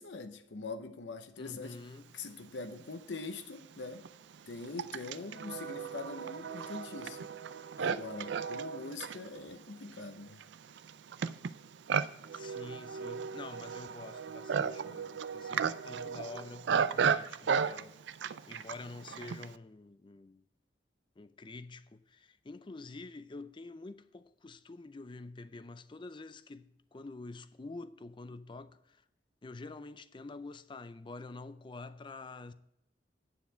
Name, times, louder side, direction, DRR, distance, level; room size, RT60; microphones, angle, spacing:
voice 1, 0.0-1.8 2.1-4.1 4.5-7.3 7.8-10.4, left 3 dB, 80° left, 0.7 m, -43 dB
voice 2, 1.4-2.1 12.3-18.0 18.5-20.4 21.2-29.0 29.4-32.5, left 3 dB, 25° left, 0.4 m, -47 dB
Livestock farm animals working animals, 2.8-2.9 3.6-19.6, right 6 dB, 75° right, 0.4 m, -35 dB
9.2 x 7.2 x 4.5 m
head